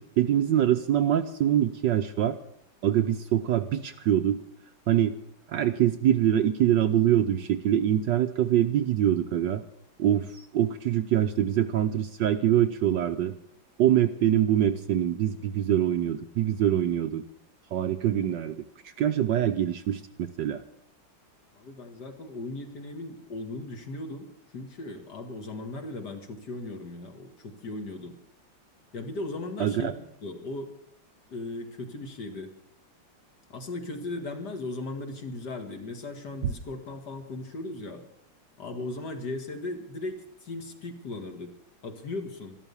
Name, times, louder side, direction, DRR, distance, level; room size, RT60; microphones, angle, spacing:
voice 1, 0.0-2.4 2.8-4.4 4.9-5.1 5.5-9.6 10.0-13.3 13.8-17.2 17.7-20.6 29.6-29.9, right 11 dB, 65° right, 8 dB, 1.2 m, -24 dB
voice 2, 21.5-24.3 24.5-28.1 28.9-29.9 30.2-30.7 31.3-32.5 33.5-38.0 38.6-41.5 41.8-42.6, left 2 dB, 50° left, 5 dB, 2.2 m, -37 dB
13.0 x 13.0 x 7.1 m, 0.73 s
omnidirectional pair, 2.4 m